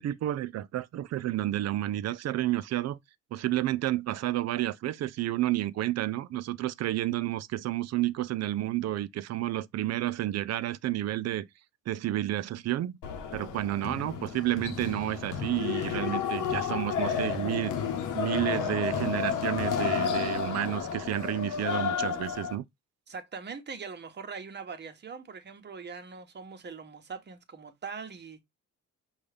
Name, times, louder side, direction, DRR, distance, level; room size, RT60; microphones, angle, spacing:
voice 1, 0.0-3.0 3.3-11.5 11.9-13.0 13.3-17.8 18.1-22.6, right 14 dB, 60° right, 0.4 m, -30 dB
sound 1, 13.0-22.6, left 7 dB, 85° left, 0.8 m, -31 dB
voice 2, 23.1-28.4, right 5 dB, 35° right, 1.0 m, -42 dB
5.4 x 2.4 x 3.3 m
cardioid pair, 90°, 30 cm